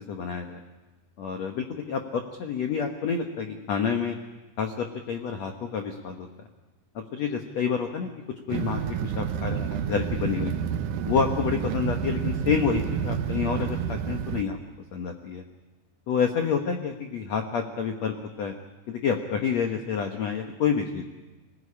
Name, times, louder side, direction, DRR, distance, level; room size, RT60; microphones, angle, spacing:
voice 1, 0.1-0.6 1.2-4.2 4.6-6.3 6.9-8.1 8.5-10.5 11.1-14.6 14.9-15.4 16.1-18.5 18.9-21.0, left 6 dB, 85° left, 4 dB, 1.5 m, -28 dB
sound 1, 8.5-14.4, right 8 dB, 90° right, 1.8 m, -29 dB
24.0 x 18.0 x 9.9 m, 1.2 s
omnidirectional pair, 5.2 m